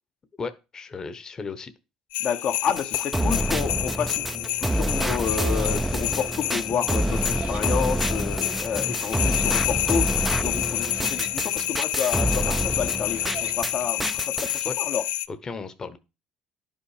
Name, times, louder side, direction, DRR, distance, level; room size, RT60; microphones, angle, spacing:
voice 1, 0.4-1.7 12.4-12.5 14.6-14.8 15.3-16.0, left 4 dB, 30° left, 1.0 m, -35 dB
sound 1, 2.1-15.3, left 16 dB, 85° left, 0.5 m, -29 dB
voice 2, 2.2-15.0, left 7 dB, 55° left, 1.0 m, -30 dB
sound 2, 2.8-13.7 14.0-14.6, right 1 dB, 5° right, 0.6 m, -27 dB
sound 3, 5.1-5.7 6.7-7.7 8.5-8.6 8.8-9.5 10.6-11.4 12.8-13.6, right 8 dB, 55° right, 1.2 m, -44 dB
11.0 x 5.5 x 4.9 m
cardioid pair, 100°, 2 cm